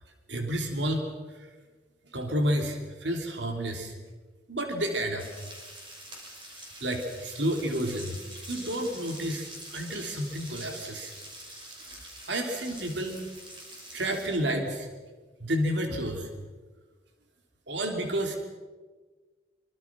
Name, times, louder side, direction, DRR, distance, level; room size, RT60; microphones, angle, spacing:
voice 1, 0.3-1.5 2.0-3.9 4.5-5.3 6.8-8.2 8.5-11.1 11.9-13.2 13.9-14.9 15.4-16.3 17.7-18.4, equal, 70° right, 3 dB, 3.1 m, -30 dB
sound 1, 5.2-14.3, right 1 dB, 25° right, 6.1 m, -45 dB
25.5 x 25.5 x 6.1 m, 1.3 s
head